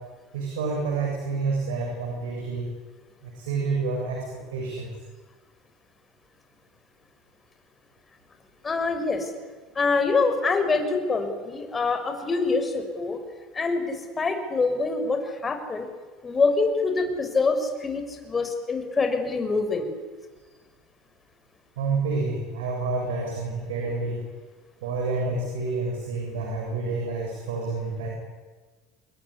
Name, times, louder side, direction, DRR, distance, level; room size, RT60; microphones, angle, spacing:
voice 1, 0.3-2.7 3.2-4.2 4.5-4.9 21.8-24.2 24.8-28.1, right 3 dB, 75° right, 0 dB, 7.3 m, -28 dB
voice 2, 8.6-9.3 9.7-13.2 13.5-15.9 16.2-19.9, left 4 dB, 25° left, 6 dB, 6.5 m, -25 dB
27.5 x 21.5 x 10.0 m, 1.4 s
hypercardioid pair, 75°, 0 cm